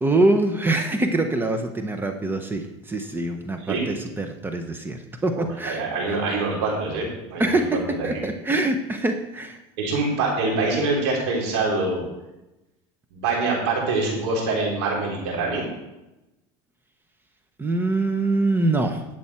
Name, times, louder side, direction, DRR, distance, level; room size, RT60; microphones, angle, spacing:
voice 1, 0.0-6.2 7.4-9.6 17.6-19.0, right 2 dB, 15° right, 6 dB, 0.9 m, -24 dB
voice 2, 5.3-7.6 8.0-8.2 9.8-12.0 13.1-15.7, right 3 dB, 80° right, -2 dB, 4.2 m, -25 dB
11.0 x 7.8 x 4.4 m, 0.96 s
supercardioid pair, 115°, 14 cm